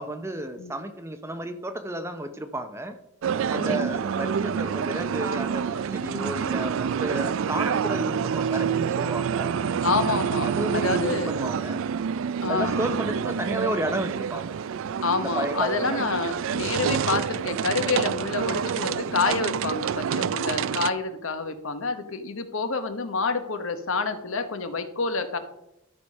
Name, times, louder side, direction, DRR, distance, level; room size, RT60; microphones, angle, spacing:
voice 1, 0.0-3.0 3.5-9.5 10.4-11.9 12.5-14.6 15.2-16.0, right 1 dB, 10° right, 8 dB, 0.6 m, -32 dB
sound 1, 3.2-20.9, right 7 dB, 60° right, 0.3 m, -27 dB
voice 2, 3.5-3.9 6.1-6.3 9.8-11.3 12.4-12.8 15.0-25.4, left 4 dB, 65° left, 8 dB, 1.1 m, -28 dB
13.0 x 5.0 x 5.4 m, 0.86 s
head